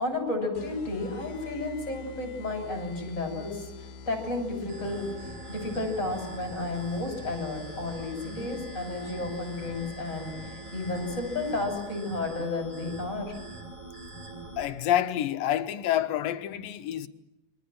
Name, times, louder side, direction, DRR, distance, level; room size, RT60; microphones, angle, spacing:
voice 1, 0.0-13.3, left 2 dB, 20° left, 7.1 m, -32 dB
sound 1, 0.6-11.9, left 5 dB, 60° left, 2.9 m, -46 dB
sound 2, 4.7-14.7, right 2 dB, 70° right, 7.1 m, -43 dB
voice 2, 14.6-17.1, left 11 dB, 80° left, 2.8 m, -28 dB
30.0 x 24.5 x 7.7 m
omnidirectional pair, 3.9 m